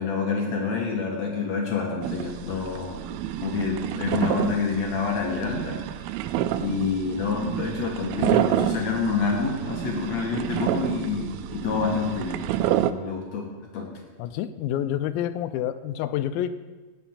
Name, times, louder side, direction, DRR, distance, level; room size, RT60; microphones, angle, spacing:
voice 1, 0.0-3.1 3.4-5.8 6.5-12.4 12.8-13.5 13.7-13.9, left 5 dB, 60° left, -1 dB, 2.2 m, -27 dB
sound 1, 2.0-12.9, right 12 dB, 85° right, 2.4 m, -29 dB
voice 2, 14.2-16.5, left 11 dB, 85° left, 12 dB, 2.3 m, -28 dB
16.5 x 6.0 x 5.6 m, 1.3 s
omnidirectional pair, 4.3 m